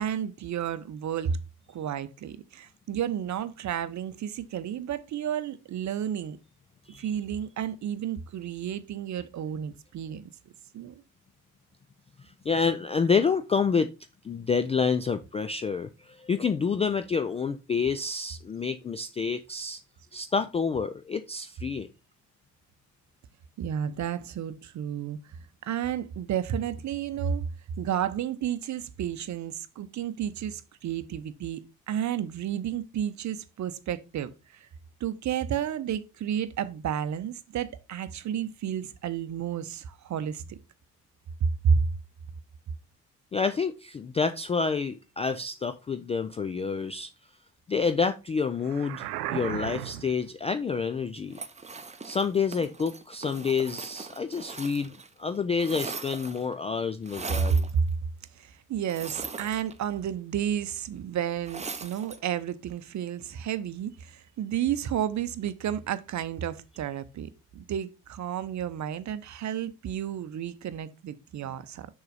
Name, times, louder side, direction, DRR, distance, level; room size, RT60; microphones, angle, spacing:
voice 1, 0.0-1.4 1.7-6.4 7.0-10.3 10.7-10.9 23.6-27.5 27.8-34.7 35.0-40.6 41.4-41.8 57.5-57.9 58.4-71.9, right 8 dB, 35° right, 0.8 m, -31 dB
voice 2, 12.4-13.9 14.2-19.8 20.1-21.9 43.3-47.1 47.7-51.4 52.0-57.7, left 5 dB, 15° left, 0.3 m, -28 dB
sound 1, 48.6-50.3, right 14 dB, 75° right, 0.6 m, -35 dB
sound 2, 51.3-55.1 55.3-56.5 57.0-57.7 58.8-60.0 61.4-62.2, right 4 dB, 15° right, 0.8 m, -40 dB
6.6 x 5.7 x 4.0 m
figure-of-eight pair, 45°, 47 cm